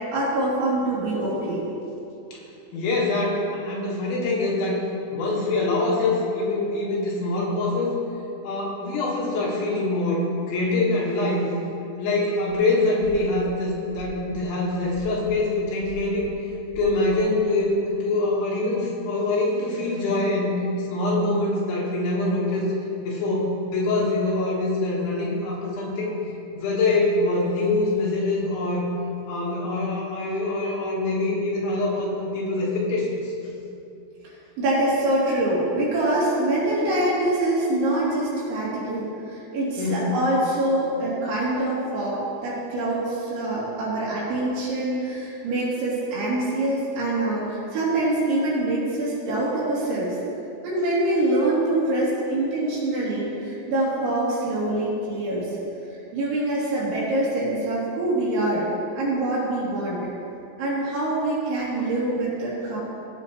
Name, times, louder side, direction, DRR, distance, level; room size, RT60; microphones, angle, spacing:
voice 1, 0.1-1.7 34.2-50.2 50.6-55.6 56.1-58.7 59.0-60.1 60.6-62.8, right 1 dB, 65° right, -8 dB, 5.2 m, -25 dB
voice 2, 2.7-4.8 5.1-8.0 8.4-11.5 12.0-16.3 16.8-22.7 23.0-26.1 26.5-28.9 29.3-33.3 39.8-40.2, left 2 dB, 70° left, -5 dB, 3.7 m, -24 dB
sound 1, 12.5-12.6 13.0-13.5 13.9-17.4, equal, 80° right, 4.1 m, -42 dB
18.0 x 8.4 x 3.1 m, 2.8 s
omnidirectional pair, 5.9 m